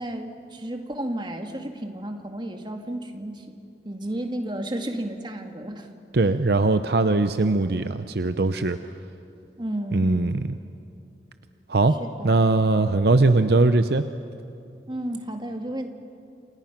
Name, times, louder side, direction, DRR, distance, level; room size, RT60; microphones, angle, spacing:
voice 1, 0.0-3.6 3.9-5.9 9.6-10.1 12.0-12.3 14.9-15.9, right 1 dB, 25° right, 5 dB, 1.9 m, -32 dB
voice 2, 6.1-8.8 9.9-10.6 11.7-11.9 12.2-14.0, right 3 dB, 60° right, 10 dB, 0.7 m, -20 dB
28.5 x 27.5 x 6.0 m, 2.6 s
head